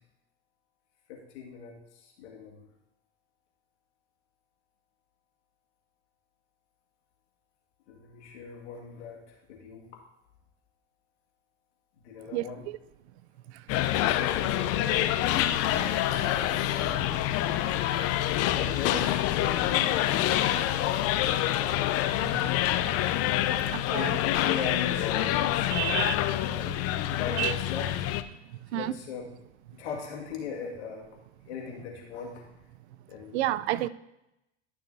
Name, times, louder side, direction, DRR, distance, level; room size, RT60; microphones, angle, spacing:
voice 1, 1.1-2.6 7.9-9.9 12.0-12.6 13.9-17.4 18.0-21.8 23.9-25.3 25.7-26.7 27.1-27.9 28.7-29.3 29.7-31.1 31.5-32.4 33.1-33.4, left 6 dB, 75° left, 2.2 m, -39 dB
voice 2, 12.3-12.8 13.5-13.6 22.2-22.3 23.6-24.2 25.7-26.1 26.7-26.8 27.1-27.5 28.4-28.9 33.3-33.9, right 15 dB, 70° right, 0.5 m, -31 dB
sound 1, 13.7-28.2, left 13 dB, 45° left, 0.6 m, -27 dB
12.0 x 6.4 x 2.8 m
hypercardioid pair, 90°, 34 cm